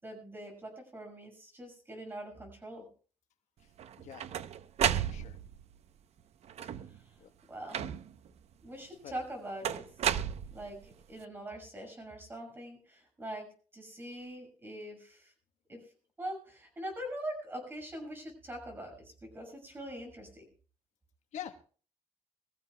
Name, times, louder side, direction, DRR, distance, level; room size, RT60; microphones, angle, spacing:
voice 1, 0.0-2.8 6.9-7.0 7.5-7.8 8.6-9.8 10.5-13.5 13.7-15.3 15.7-15.8 16.2-20.4, right 1 dB, 20° right, 3 dB, 6.4 m, -43 dB
sound 1, 3.8-5.6 6.5-7.0 7.7-8.3 9.6-10.9, right 9 dB, 65° right, 0.7 m, -33 dB
voice 2, 4.8-5.4 7.2-7.3 9.0-9.2 21.3-21.5, left 10 dB, 80° left, 8 dB, 1.2 m, -45 dB
23.0 x 15.0 x 2.2 m, 0.40 s
wide cardioid pair, 160°, 12 cm